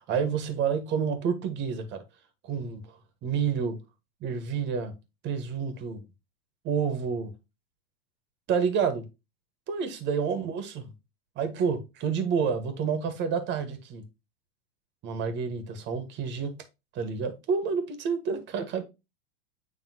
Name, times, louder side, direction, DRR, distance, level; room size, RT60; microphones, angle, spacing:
voice 1, 0.0-2.0 2.4-3.8 4.2-4.9 5.2-6.0 6.6-7.3 8.5-9.0 9.7-10.9 11.4-14.0 15.0-16.6 16.9-18.8, right 6 dB, 40° right, 1.8 m, -29 dB
9.1 x 3.5 x 3.0 m
hypercardioid pair, 105°, 29 cm